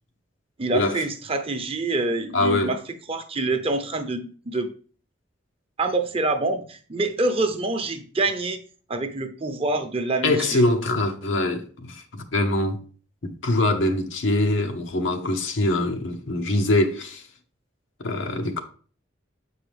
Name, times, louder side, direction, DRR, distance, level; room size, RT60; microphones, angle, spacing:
voice 1, 0.6-2.8 3.1-4.7 5.8-8.6 8.9-10.6, right 2 dB, 30° right, 0.7 m, -26 dB
voice 2, 2.3-2.7 10.2-12.8 13.2-17.2 18.0-18.6, left 1 dB, 80° left, 0.9 m, -23 dB
7.2 x 4.7 x 3.3 m
head